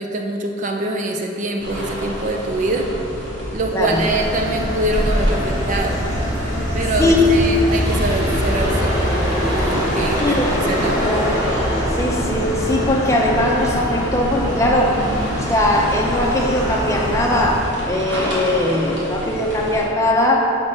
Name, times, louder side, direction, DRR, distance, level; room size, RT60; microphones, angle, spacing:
voice 1, 0.0-2.9 3.5-6.0 6.7-11.0, right 2 dB, 40° right, 2 dB, 0.4 m, -24 dB
sound 1, 1.6-19.8, equal, 65° right, 1.4 m, -30 dB
voice 2, 3.7-4.0 7.0-7.3 10.2-11.3 11.9-15.0 15.4-20.6, left 1 dB, 15° left, -1 dB, 0.6 m, -20 dB
sound 2, 3.9-17.6, equal, 15° right, 1.5 m, -23 dB
6.4 x 4.3 x 4.3 m, 2.9 s
head